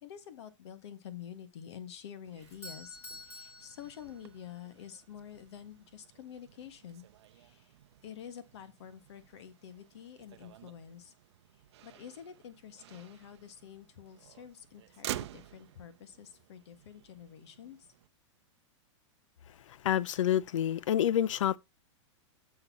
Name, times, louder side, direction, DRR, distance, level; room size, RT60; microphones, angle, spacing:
voice 1, 0.0-7.7 8.0-11.1 11.5-17.9, left 9 dB, 60° left, 1.5 m, -48 dB
Motor vehicle (road), 2.2-18.1, right 13 dB, 60° right, 0.6 m, -50 dB
Doorbell, 2.4-4.6, left 1 dB, 15° left, 2.6 m, -49 dB
voice 2, 19.8-21.6, left 10 dB, 80° left, 0.6 m, -28 dB
6.8 x 6.7 x 5.6 m
supercardioid pair, 165°, 16 cm